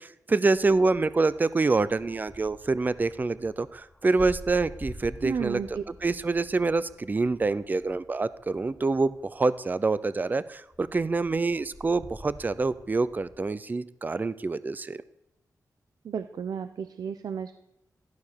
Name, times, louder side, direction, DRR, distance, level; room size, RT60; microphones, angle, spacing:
voice 1, 0.0-5.6 6.0-15.0, right 3 dB, 30° right, 15 dB, 0.6 m, -26 dB
sound 1, 0.5-10.2 10.7-13.6, left 1 dB, 10° left, 0.9 m, -48 dB
voice 2, 5.2-5.8 16.0-17.5, right 7 dB, 90° right, 10 dB, 0.8 m, -32 dB
15.0 x 13.0 x 6.8 m, 0.82 s
wide cardioid pair, 135°, 6 cm